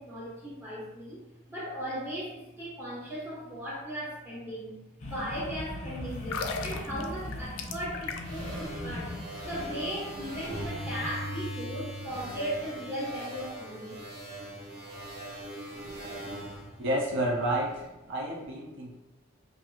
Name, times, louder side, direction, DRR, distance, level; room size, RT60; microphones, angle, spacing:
voice 1, 0.0-14.0, equal, 10° right, -8 dB, 1.1 m, -37 dB
sound 1, 5.0-11.1, left 1 dB, 35° left, 0.6 m, -40 dB
sound 2, 6.2-8.5 8.8-9.0, left 5 dB, 75° left, 0.3 m, -36 dB
sound 3, 8.2-17.7, right 1 dB, 40° right, 1.2 m, -40 dB
voice 2, 16.8-19.0, right 1 dB, 65° right, -2 dB, 0.4 m, -30 dB
2.8 x 2.5 x 2.3 m, 0.92 s
head